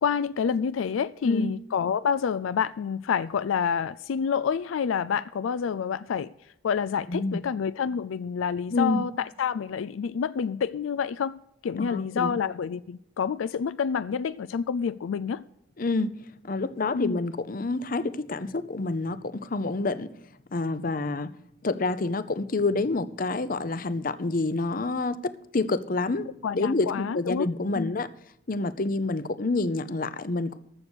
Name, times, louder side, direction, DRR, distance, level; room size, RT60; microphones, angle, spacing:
voice 1, 0.0-6.3 6.6-11.3 11.6-15.4 16.9-17.2 26.4-27.5 27.7-28.0, left 7 dB, 85° left, 0.4 m, -28 dB
voice 2, 7.1-7.4 8.7-9.0 11.8-12.4 15.8-16.2 16.4-20.1 20.5-21.3 21.6-26.3 26.5-28.1 28.5-30.6, left 3 dB, 45° left, 0.6 m, -28 dB
14.5 x 6.7 x 6.2 m
head